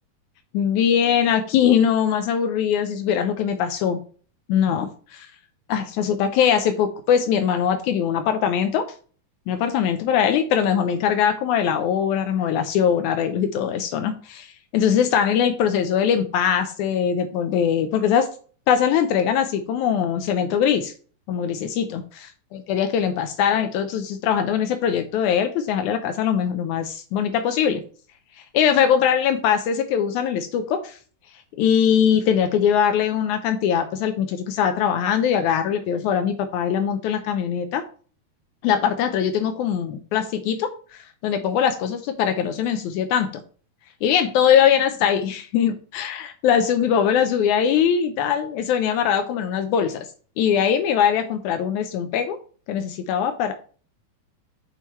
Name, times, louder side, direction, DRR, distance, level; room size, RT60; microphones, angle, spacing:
voice 1, 0.5-4.0 4.5-4.9 5.7-8.9 9.5-18.3 18.7-20.9 21.3-22.0 22.7-27.8 28.3-31.0 31.6-37.8 38.6-43.4 44.0-50.1 50.4-52.4 52.7-53.5, left 8 dB, 85° left, 8 dB, 1.7 m, -21 dB
9.1 x 4.5 x 3.0 m, 0.41 s
omnidirectional pair, 4.1 m